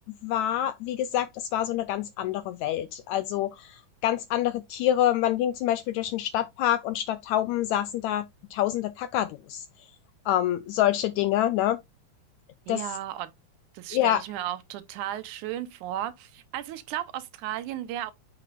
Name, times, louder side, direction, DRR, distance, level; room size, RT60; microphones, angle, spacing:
voice 1, 0.2-8.2 8.5-9.6 10.2-11.8 12.7-12.8 13.9-14.2, left 12 dB, 80° left, 1.6 m, -26 dB
voice 2, 12.7-13.3 13.7-18.1, right 12 dB, 80° right, 2.1 m, -34 dB
8.9 x 5.9 x 2.5 m
omnidirectional pair, 3.7 m